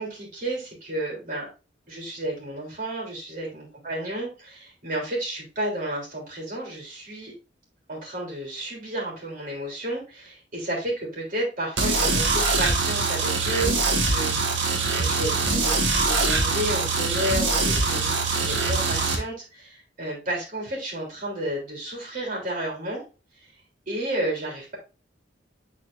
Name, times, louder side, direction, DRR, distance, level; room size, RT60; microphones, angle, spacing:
voice 1, 0.0-1.5 1.9-7.3 7.9-23.0 23.9-24.8, right 1 dB, 45° right, -1 dB, 3.3 m, -32 dB
sound 1, 11.8-19.2, right 3 dB, 70° right, 1.5 m, -23 dB
10.0 x 4.3 x 2.6 m, 0.31 s
head